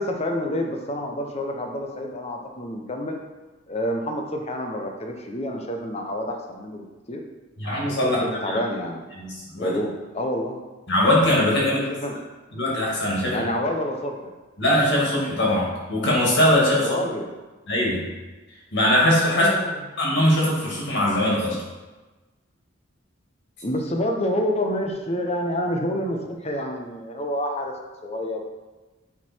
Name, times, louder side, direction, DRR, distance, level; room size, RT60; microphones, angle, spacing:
voice 1, 0.0-3.2 3.7-7.2 8.0-9.0 9.6-10.6 11.9-12.2 13.3-14.3 16.8-17.3 19.3-19.8 23.6-27.7 28.0-28.4, left 1 dB, 30° left, 2 dB, 0.9 m, -28 dB
voice 2, 7.6-8.6 9.2-9.8 10.9-11.8 12.5-13.5 14.6-17.0 17.7-18.0 18.7-19.5 20.0-21.6, left 1 dB, 60° left, -4 dB, 2.4 m, -21 dB
8.9 x 3.9 x 4.5 m, 1.2 s
head